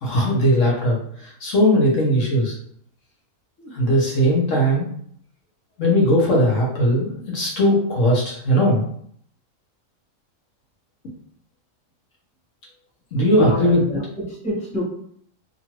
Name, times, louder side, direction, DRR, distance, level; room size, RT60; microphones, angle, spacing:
voice 1, 0.0-2.5 3.6-4.9 5.8-8.8 13.1-13.8, equal, 70° left, -3 dB, 1.2 m, -19 dB
voice 2, 13.3-14.8, left 1 dB, 5° left, -7 dB, 0.8 m, -27 dB
2.9 x 2.4 x 2.9 m, 0.64 s
omnidirectional pair, 1.4 m